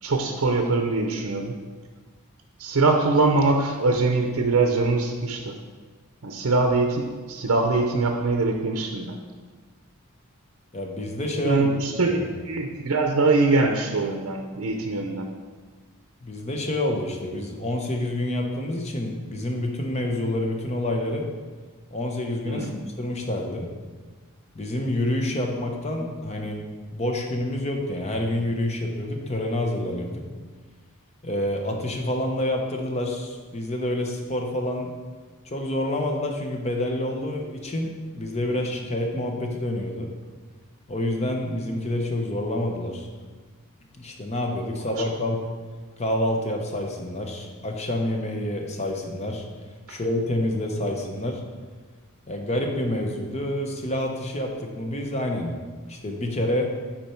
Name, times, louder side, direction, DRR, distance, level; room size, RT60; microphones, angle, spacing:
voice 1, 0.0-1.5 2.6-5.5 6.2-9.2 11.4-15.3 22.5-22.8 38.5-38.6 49.9-50.0, right 3 dB, 65° right, 3 dB, 0.6 m, -23 dB
voice 2, 10.7-11.7 12.1-12.2 16.2-21.3 21.9-22.7 23.0-23.7 24.5-26.6 26.9-30.2 31.2-34.9 35.4-40.1 40.9-43.1 44.0-45.4 46.0-49.4 49.9-51.4 52.3-55.5 55.9-56.7, left 1 dB, 30° left, 2 dB, 0.8 m, -28 dB
8.8 x 4.4 x 4.4 m, 1.5 s
head